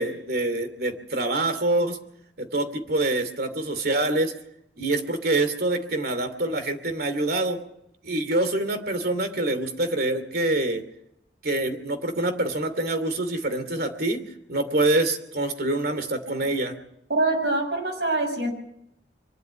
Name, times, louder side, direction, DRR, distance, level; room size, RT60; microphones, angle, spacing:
voice 1, 0.0-2.0 2.4-4.3 4.8-7.6 8.0-10.8 11.4-14.2 14.5-16.7, right 2 dB, 60° right, 9 dB, 2.7 m, -25 dB
voice 2, 17.1-18.5, right 2 dB, 75° right, 3 dB, 6.3 m, -24 dB
24.0 x 12.0 x 9.3 m, 0.79 s
head